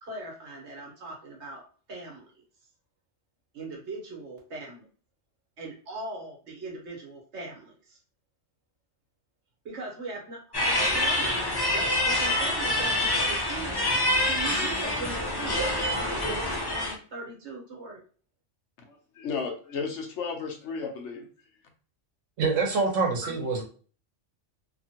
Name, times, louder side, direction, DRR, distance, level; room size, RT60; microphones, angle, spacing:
voice 1, 0.0-2.3 3.5-4.9 5.6-8.0 9.6-18.0 23.2-23.6, right 3 dB, 65° right, -2 dB, 1.4 m, -40 dB
sound 1, 10.5-16.9, left 1 dB, 40° left, 0.3 m, -26 dB
voice 2, 18.8-21.3, left 5 dB, 70° left, 4 dB, 1.0 m, -34 dB
voice 3, 22.4-23.6, right 4 dB, 85° right, 1 dB, 1.2 m, -25 dB
2.8 x 2.5 x 2.8 m, 0.40 s
omnidirectional pair, 1.3 m